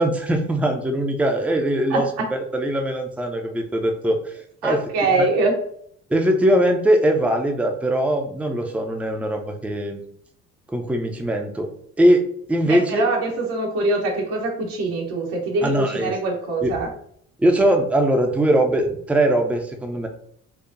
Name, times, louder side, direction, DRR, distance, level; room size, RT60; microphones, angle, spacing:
voice 1, 0.0-2.1 2.3-4.3 4.6-4.8 5.2-5.3 6.1-10.0 10.7-11.7 12.0-13.1 15.6-16.1 16.6-16.7 17.4-20.1, right 1 dB, 5° right, 3 dB, 0.5 m, -21 dB
voice 2, 1.9-2.3 4.6-5.5 12.6-16.9, right 2 dB, 70° right, 0 dB, 1.1 m, -23 dB
4.6 x 2.3 x 2.6 m, 0.65 s
hypercardioid pair, 50°, 40 cm